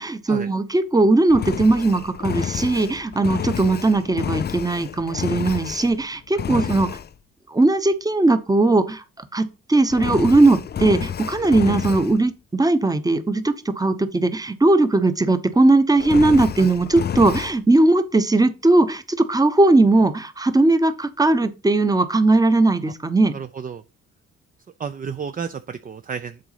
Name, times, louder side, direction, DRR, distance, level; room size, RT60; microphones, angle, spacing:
voice 1, 0.0-6.9 7.5-9.0 9.3-23.3, right 2 dB, 10° right, 0.9 m, -18 dB
Engine, 1.3-6.0 6.4-7.1 9.9-12.2 16.0-17.6, left 8 dB, 35° left, 0.4 m, -29 dB
voice 2, 23.3-23.8 24.8-26.4, right 6 dB, 30° right, 0.5 m, -32 dB
7.8 x 4.0 x 5.7 m
cardioid pair, 90°, 30 cm